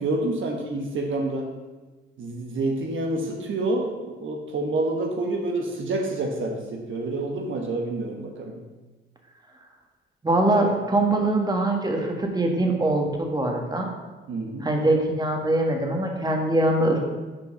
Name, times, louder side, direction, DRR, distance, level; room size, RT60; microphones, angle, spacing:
voice 1, 0.0-1.5 2.2-8.6 14.3-14.7, right 2 dB, 70° right, 1 dB, 1.1 m, -28 dB
voice 2, 10.2-13.9 14.6-17.0, right 2 dB, 20° right, 1 dB, 1.5 m, -23 dB
6.2 x 4.7 x 6.4 m, 1.2 s
cardioid pair, 70°, 21 cm